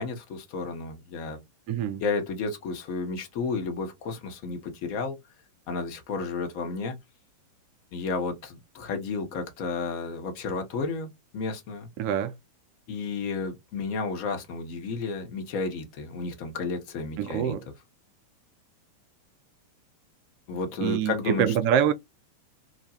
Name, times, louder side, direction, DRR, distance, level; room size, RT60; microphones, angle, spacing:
voice 1, 0.0-1.4 2.0-5.2 5.7-7.0 7.9-11.9 12.9-17.5 20.5-21.6, left 4 dB, 45° left, 0.8 m, -32 dB
voice 2, 1.7-2.0 12.0-12.3 17.2-17.6 20.8-21.9, right 9 dB, 45° right, 0.3 m, -25 dB
2.2 x 2.0 x 2.8 m
figure-of-eight pair, 90°, 0 cm